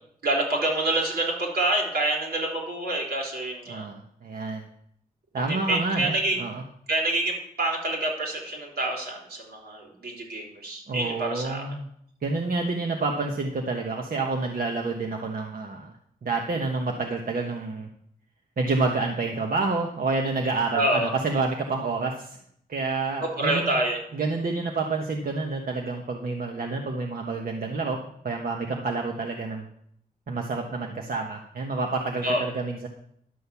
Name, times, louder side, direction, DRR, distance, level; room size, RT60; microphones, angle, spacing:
voice 1, 0.2-3.8 5.3-6.4 6.9-11.6 20.7-21.1 23.4-24.0 32.2-32.5, right 1 dB, 90° right, -1 dB, 3.7 m, -27 dB
voice 2, 3.7-4.7 5.3-6.6 10.9-11.9 12.2-15.9 16.2-17.9 18.6-22.4 22.7-23.7 24.1-29.6 30.3-32.9, right 3 dB, 65° right, 2 dB, 1.2 m, -28 dB
11.5 x 6.4 x 7.1 m, 0.70 s
wide cardioid pair, 80°, 16 cm